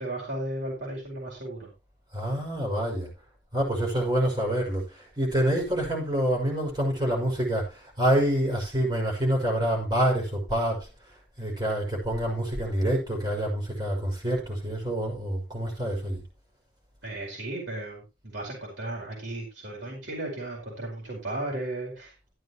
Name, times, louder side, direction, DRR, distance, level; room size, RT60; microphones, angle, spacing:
voice 1, 0.0-1.7 11.4-11.5 17.0-22.1, right 1 dB, 80° right, 5.0 m, -35 dB
voice 2, 2.1-3.1 3.5-10.9 11.4-16.2, right 1 dB, 25° right, 5.7 m, -27 dB
14.0 x 10.5 x 3.0 m
head